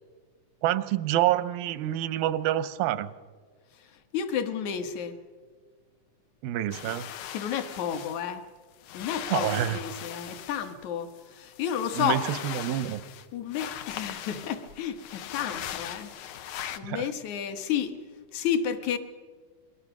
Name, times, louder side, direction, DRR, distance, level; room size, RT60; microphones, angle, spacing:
voice 1, 0.6-3.1 6.4-7.1 9.3-9.8 11.9-13.0 16.8-17.1, right 13 dB, 85° right, 15 dB, 2.6 m, -27 dB
voice 2, 4.1-5.2 7.3-8.4 8.9-12.2 13.3-16.1 16.8-18.0 18.3-19.0, left 8 dB, 65° left, 9 dB, 2.4 m, -31 dB
sound 1, 6.7-8.3 8.8-10.7 11.1-13.3 13.5-16.8, left 11 dB, 80° left, 2.7 m, -39 dB
26.5 x 22.0 x 6.0 m, 1.5 s
omnidirectional pair, 4.0 m